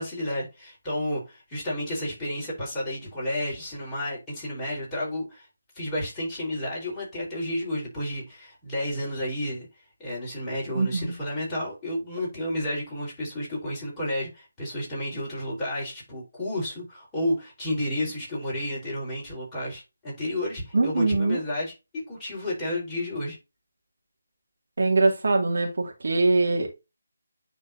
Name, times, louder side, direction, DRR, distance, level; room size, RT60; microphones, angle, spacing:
voice 1, 0.0-5.5 5.7-9.7 10.0-21.7 22.1-23.4, left 1 dB, 15° left, 4.3 m, -31 dB
voice 2, 10.7-11.1 20.7-21.4 24.8-26.8, right 3 dB, 60° right, 2.4 m, -23 dB
9.8 x 4.4 x 2.7 m
figure-of-eight pair, 155°, 0 cm